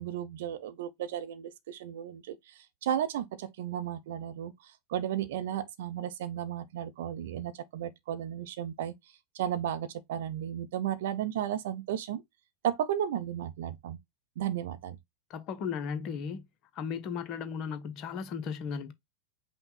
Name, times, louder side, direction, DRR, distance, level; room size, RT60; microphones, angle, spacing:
voice 1, 0.0-8.9 9.3-12.2 12.6-14.0 14.4-15.0, right 10 dB, 55° right, 0.6 m, -34 dB
voice 2, 15.3-16.4 16.7-18.9, left 6 dB, 35° left, 0.8 m, -35 dB
5.5 x 2.2 x 3.9 m
figure-of-eight pair, 90°, 0 cm